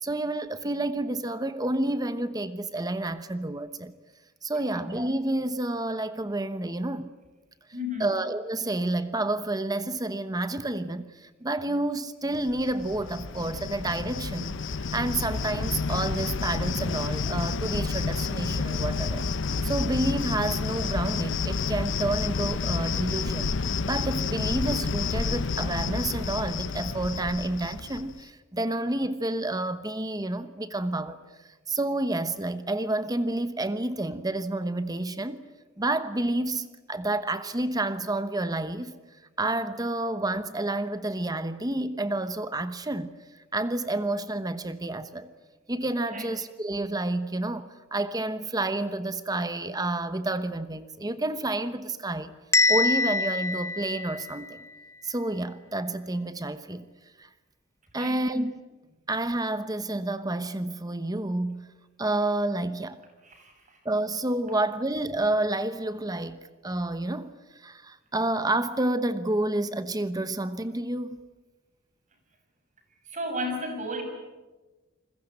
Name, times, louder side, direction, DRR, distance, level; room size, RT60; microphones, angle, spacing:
voice 1, 0.0-3.9 4.4-7.1 8.0-19.2 19.6-23.5 23.9-31.2 31.7-35.4 35.8-38.9 39.4-43.1 43.5-45.3 45.7-52.4 52.7-54.6 55.0-56.9 57.2-57.3 57.9-58.6 59.1-61.7 62.0-63.0 63.8-71.2, right 2 dB, 20° right, 1.0 m, -29 dB
voice 2, 7.7-8.2 46.1-46.3 57.9-58.3 63.2-63.8 73.1-74.0, left 1 dB, 40° right, 6.7 m, -34 dB
Cricket, 12.5-28.2, left 4 dB, 65° left, 0.8 m, -30 dB
Bell, 52.5-54.6, left 3 dB, 15° left, 1.0 m, -25 dB
29.0 x 21.5 x 8.7 m
head